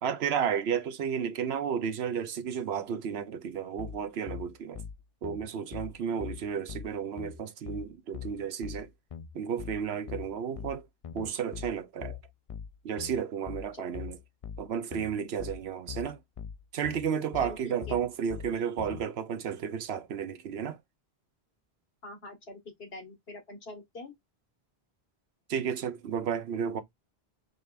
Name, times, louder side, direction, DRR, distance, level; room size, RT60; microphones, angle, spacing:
voice 1, 0.0-4.8 5.2-8.9 9.3-10.9 11.1-12.2 12.8-14.2 14.6-16.2 16.7-20.8 25.5-26.8, right 7 dB, 85° right, 1.0 m, -32 dB
sound 1, 3.8-19.0, left 8 dB, 50° left, 0.4 m, -42 dB
voice 2, 17.4-18.0 22.0-24.1, left 2 dB, 75° left, 1.9 m, -45 dB
5.1 x 3.3 x 2.4 m
omnidirectional pair, 1.0 m